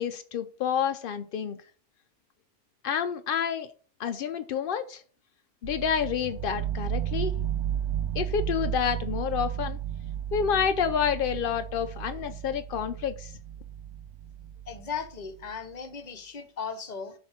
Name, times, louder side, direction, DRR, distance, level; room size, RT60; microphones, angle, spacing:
voice 1, 0.0-1.6 2.8-3.7 4.0-5.0 5.6-7.3 8.2-9.8 10.3-13.3, left 8 dB, 75° left, 0.5 m, -29 dB
sound 1, 5.6-15.4, right 10 dB, 90° right, 1.2 m, -33 dB
voice 2, 14.7-17.1, left 6 dB, 35° left, 0.8 m, -37 dB
7.0 x 3.3 x 5.7 m
omnidirectional pair, 1.5 m